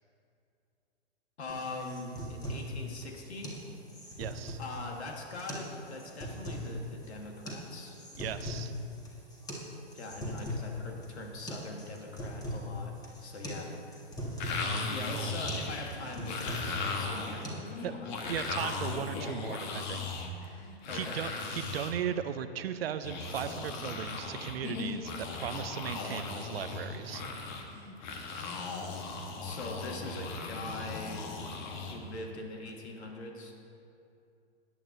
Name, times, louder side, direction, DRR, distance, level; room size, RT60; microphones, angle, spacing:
voice 1, 1.4-3.5 4.6-8.0 9.9-12.9 13.2-13.7 14.9-18.3 20.9-21.2 29.4-31.3 31.9-33.5, left 2 dB, 75° left, 1 dB, 1.8 m, -42 dB
sound 1, 1.5-17.5, equal, 10° left, 1.7 m, -41 dB
voice 2, 4.2-4.6 8.2-8.7 17.8-17.9 18.3-20.1 20.9-27.2, right 9 dB, 65° right, 11 dB, 0.7 m, -37 dB
sound 2, 14.4-21.9 23.0-32.2, left 3 dB, 45° left, 1.3 m, -37 dB
18.0 x 9.4 x 2.7 m, 2.5 s
hypercardioid pair, 125°, 33 cm